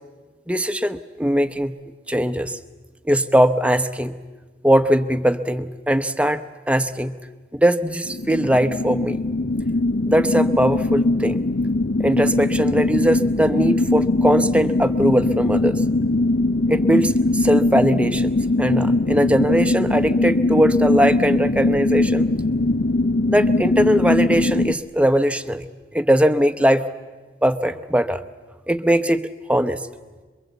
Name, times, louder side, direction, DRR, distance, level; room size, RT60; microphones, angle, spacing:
voice 1, 0.5-1.7 2.1-2.6 3.0-4.2 4.6-7.2 7.5-9.2 10.1-11.4 12.0-15.8 16.7-22.3 23.3-25.7 25.9-26.9 27.4-28.2 28.7-29.9, equal, 5° right, 11 dB, 0.8 m, -20 dB
sound 1, 8.1-24.7, left 2 dB, 80° left, 0.8 m, -21 dB
27.0 x 23.0 x 8.3 m, 1.3 s
head